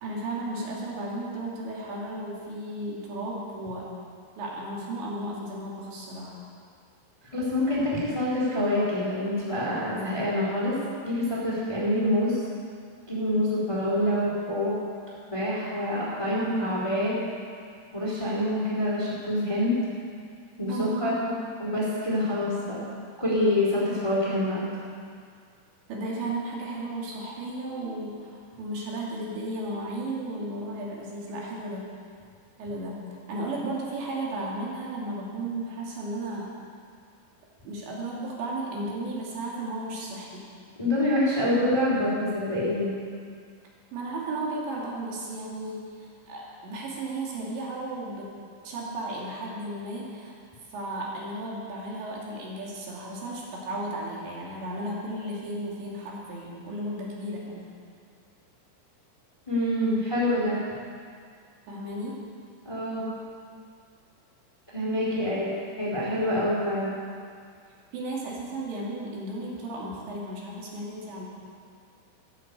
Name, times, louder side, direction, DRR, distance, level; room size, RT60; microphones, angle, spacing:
voice 1, 0.0-3.9 4.4-6.4 20.7-21.2 25.9-31.9 32.6-36.5 37.6-40.4 43.9-48.3 48.6-50.3 50.7-57.7 61.7-62.2 65.1-65.3 67.9-71.3, right 1 dB, 75° right, -4 dB, 4.6 m, -34 dB
voice 2, 7.3-10.8 11.0-12.4 13.1-14.8 15.3-17.1 17.9-19.7 20.6-22.8 23.2-24.7 40.8-42.9 59.5-60.6 62.6-63.1 64.7-65.5 65.8-67.0, left 1 dB, 5° left, -6 dB, 3.0 m, -26 dB
14.5 x 9.7 x 8.1 m, 2.2 s
omnidirectional pair, 5.3 m